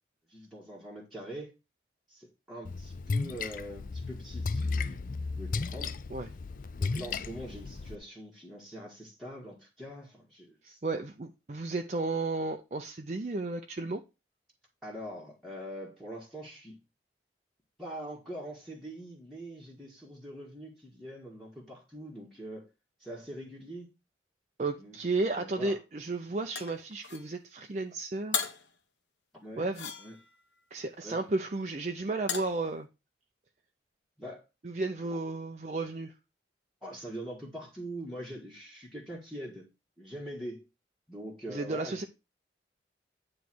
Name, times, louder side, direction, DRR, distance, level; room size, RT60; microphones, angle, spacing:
voice 1, 0.3-1.5 2.1-5.9 6.8-10.8 14.8-16.8 17.8-22.7 23.0-23.9 24.8-25.8 29.3-29.7 30.0-30.2 31.0-31.2 34.2-34.4 36.8-39.7 40.0-40.7 41.1-42.1, equal, ahead, 1.6 m, -43 dB
Splash splatter, 2.6-7.9, left 4 dB, 50° left, 0.4 m, -34 dB
voice 2, 10.8-14.0 24.6-28.5 29.6-29.9 30.7-32.9 34.6-36.1 41.5-42.0, right 3 dB, 40° right, 0.5 m, -33 dB
sound 1, 26.5-27.3 28.3-28.7 29.7-30.4 32.3-32.6, left 7 dB, 85° left, 1.1 m, -35 dB
9.3 x 3.2 x 6.0 m
head